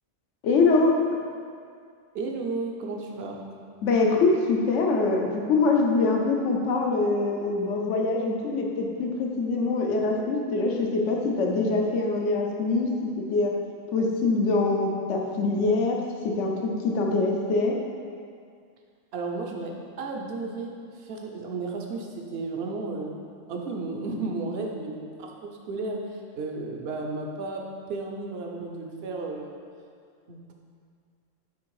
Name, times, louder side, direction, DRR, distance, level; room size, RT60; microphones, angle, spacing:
voice 1, 0.4-0.9 3.8-13.5 13.9-16.0 16.2-16.5 16.8-17.8, left 3 dB, 75° left, 0 dB, 1.1 m, -24 dB
voice 2, 2.1-3.4 19.1-23.1 23.5-27.6 27.9-29.6 30.3-30.5, right 3 dB, 60° right, 1 dB, 1.0 m, -33 dB
8.6 x 3.4 x 4.7 m, 2.2 s
omnidirectional pair, 1.3 m